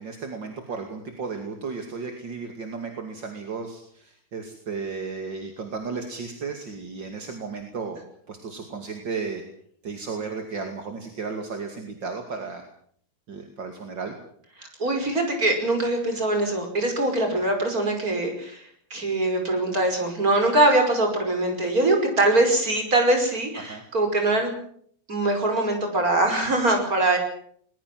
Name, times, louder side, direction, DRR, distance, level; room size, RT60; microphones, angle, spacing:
voice 1, 0.0-8.0 8.3-9.4 9.8-12.6 13.3-14.1 17.3-17.4 23.5-23.8, right 4 dB, 65° right, 4 dB, 3.2 m, -34 dB
voice 2, 14.6-24.5 25.1-27.2, right 2 dB, 45° right, 4 dB, 5.9 m, -23 dB
21.0 x 20.5 x 7.7 m, 0.62 s
omnidirectional pair, 2.1 m